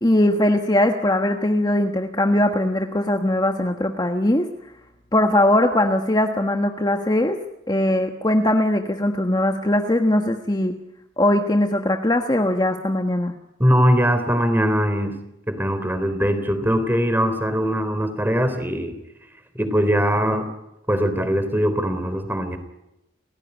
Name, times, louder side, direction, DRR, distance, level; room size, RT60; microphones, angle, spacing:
voice 1, 0.0-4.5 5.1-7.4 7.7-10.8 11.2-13.3, left 1 dB, 20° left, 4 dB, 1.4 m, -20 dB
voice 2, 13.6-15.1 15.5-18.9 19.5-20.5 20.9-22.6, equal, 10° right, 10 dB, 3.4 m, -21 dB
30.0 x 17.0 x 9.9 m, 0.92 s
head